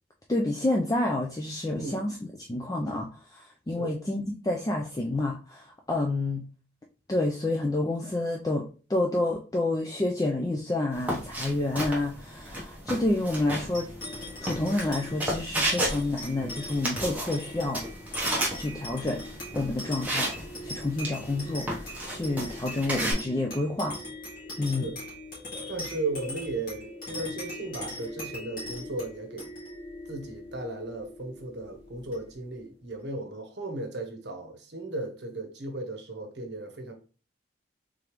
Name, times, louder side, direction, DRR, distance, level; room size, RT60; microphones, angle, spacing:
voice 1, 0.3-2.2 2.5-6.5 7.1-8.6 8.9-13.9 14.4-17.8 18.5-19.2 19.5-24.0 24.6-24.9, left 2 dB, 20° left, 0.4 m, -29 dB
sound 1, 10.9-23.1, right 1 dB, 10° right, 0.9 m, -33 dB
sound 2, 13.7-32.6, left 1 dB, 50° left, 1.9 m, -41 dB
voice 2, 24.6-25.0 25.7-29.5 30.1-36.9, right 2 dB, 65° right, 0.9 m, -36 dB
3.7 x 3.4 x 3.0 m
head